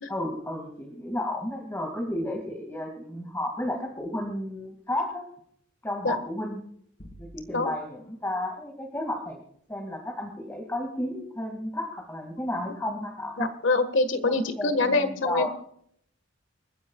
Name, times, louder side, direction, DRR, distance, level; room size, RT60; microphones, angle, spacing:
voice 1, 0.1-5.2 5.8-6.6 7.2-9.4 9.7-13.5 14.3-15.5, left 1 dB, 15° left, 0 dB, 2.2 m, -32 dB
sound 1, 7.0-8.0, equal, 45° left, 4.4 m, -48 dB
voice 2, 13.4-15.5, left 3 dB, 70° left, 10 dB, 1.6 m, -25 dB
29.0 x 10.5 x 2.4 m, 0.67 s
head